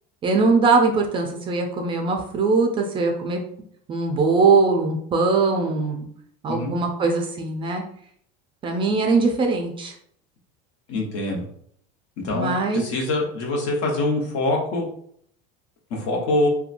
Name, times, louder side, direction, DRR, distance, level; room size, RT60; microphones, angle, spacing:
voice 1, 0.2-3.4 3.9-6.1 6.4-7.8 8.6-9.9 12.3-12.9, right 4 dB, 25° right, 2 dB, 0.3 m, -21 dB
voice 2, 10.9-11.4 12.2-14.9 15.9-16.5, left 2 dB, 65° left, -1 dB, 0.9 m, -24 dB
2.8 x 2.2 x 2.5 m, 0.65 s
supercardioid pair, 140°, 20 cm